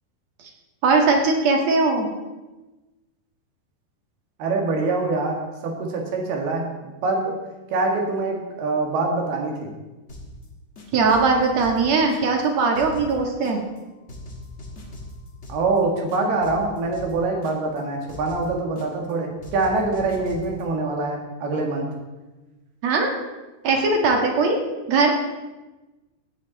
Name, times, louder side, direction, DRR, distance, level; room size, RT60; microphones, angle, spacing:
voice 1, 0.8-2.1 10.9-13.6 22.8-23.1 23.6-24.6 24.9-25.1, right 3 dB, 55° right, 2 dB, 2.5 m, -20 dB
voice 2, 4.4-7.4 7.7-9.7 15.5-21.9, right 3 dB, 90° right, 1 dB, 3.9 m, -24 dB
sound 1, 10.1-10.4 10.7-12.5 12.7-13.8 14.1-15.8 16.1-17.8 18.1-19.1 19.4-20.6, left 1 dB, 40° left, 1.0 m, -40 dB
17.0 x 10.0 x 4.1 m, 1.1 s
omnidirectional pair, 4.4 m